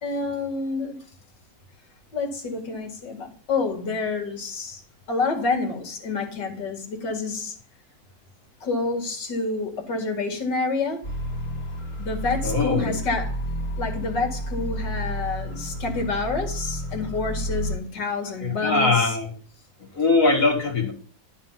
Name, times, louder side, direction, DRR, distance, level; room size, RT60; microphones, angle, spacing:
voice 1, 0.0-1.0 2.1-4.8 5.1-7.5 8.6-11.0 12.0-13.4 13.8-19.1, left 3 dB, 65° left, 2.6 m, -28 dB
sound 1, 11.0-17.8, equal, 30° left, 2.1 m, -31 dB
voice 2, 12.4-13.0 18.4-19.3 19.9-20.9, left 3 dB, 45° left, 2.2 m, -21 dB
12.0 x 4.3 x 5.7 m
omnidirectional pair, 2.1 m